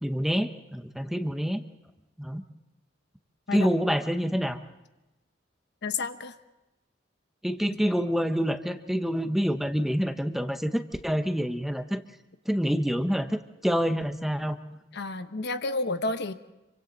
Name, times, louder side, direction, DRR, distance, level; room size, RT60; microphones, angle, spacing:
voice 1, 0.0-1.6 2.2-2.4 3.5-4.6 7.4-12.0 12.5-14.8, equal, ahead, 8 dB, 1.0 m, -27 dB
voice 2, 5.8-6.3 14.9-16.3, left 3 dB, 65° left, 9 dB, 1.0 m, -30 dB
27.0 x 24.5 x 4.0 m, 1.0 s
head